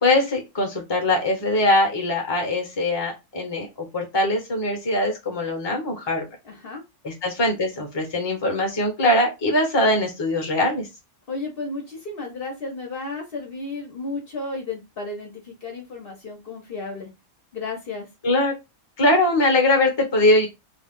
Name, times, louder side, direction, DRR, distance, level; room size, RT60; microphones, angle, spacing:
voice 1, 0.0-6.3 7.0-10.9 18.2-18.5 19.0-20.5, left 1 dB, 25° left, 2 dB, 0.8 m, -21 dB
voice 2, 6.4-6.8 11.3-17.1 17.5-18.1, left 3 dB, 55° left, 0 dB, 0.9 m, -33 dB
2.5 x 2.3 x 3.5 m, 0.23 s
omnidirectional pair, 1.3 m